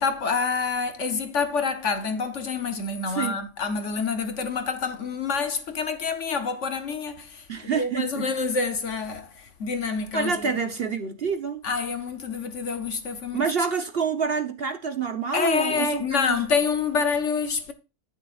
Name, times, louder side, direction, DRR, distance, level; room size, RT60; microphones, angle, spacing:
voice 1, 0.0-10.5 11.6-13.4 15.3-17.7, left 5 dB, 55° left, 1.2 m, -27 dB
voice 2, 3.1-3.4 7.5-8.3 10.1-11.6 13.3-16.4, right 6 dB, 40° right, 1.1 m, -27 dB
10.5 x 9.8 x 2.5 m
omnidirectional pair, 1.7 m